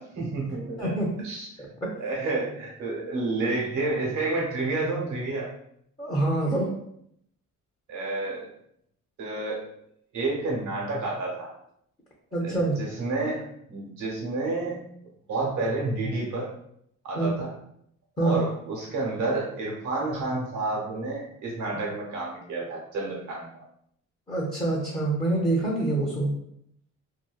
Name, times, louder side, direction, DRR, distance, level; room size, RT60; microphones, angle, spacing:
voice 1, 0.0-1.0 1.2-1.5 2.0-5.5 7.9-8.5 9.2-9.6 10.1-11.5 12.4-13.4 13.7-14.9 15.3-16.5 17.0-17.5 18.2-23.6, right 2 dB, 70° right, -3 dB, 1.0 m, -30 dB
voice 2, 6.0-6.7 12.3-12.8 17.2-17.5 18.2-18.5 24.3-26.3, right 2 dB, 20° left, -4 dB, 0.7 m, -26 dB
2.6 x 2.2 x 2.4 m, 0.72 s
cardioid pair, 90°, 30 cm